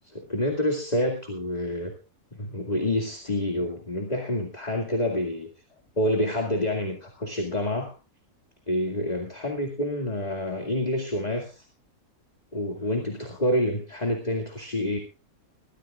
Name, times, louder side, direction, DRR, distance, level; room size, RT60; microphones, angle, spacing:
voice 1, 0.1-1.9 2.3-5.5 6.0-7.9 8.7-11.7 12.5-15.0, left 1 dB, 30° left, 2 dB, 2.3 m, -28 dB
21.5 x 14.5 x 2.4 m, 0.33 s
omnidirectional pair, 1.5 m